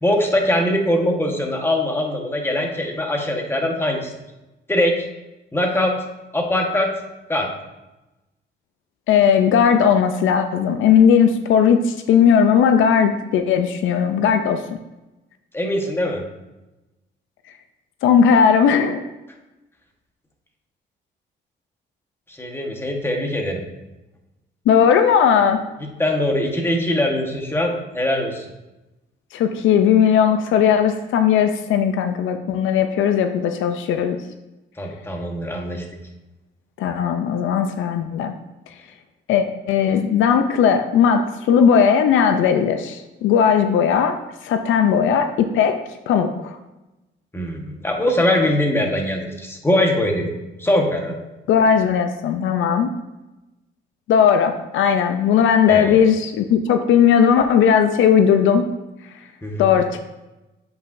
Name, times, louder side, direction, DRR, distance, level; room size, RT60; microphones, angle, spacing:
voice 1, 0.0-4.1 4.7-5.0 5.5-5.9 6.3-6.9 7.3-7.5 15.5-16.2 22.3-23.6 26.0-28.4 34.8-35.8 47.3-50.3 50.6-51.1 55.7-56.0 59.4-59.7, left 1 dB, 10° left, 2 dB, 1.2 m, -22 dB
voice 2, 9.1-14.6 18.0-19.0 24.7-25.6 29.3-34.2 36.8-38.3 39.3-46.6 51.5-52.9 54.1-58.6 59.6-60.1, left 7 dB, 80° left, 8 dB, 0.5 m, -17 dB
7.8 x 5.5 x 2.6 m, 1.0 s
cardioid pair, 90°, 20 cm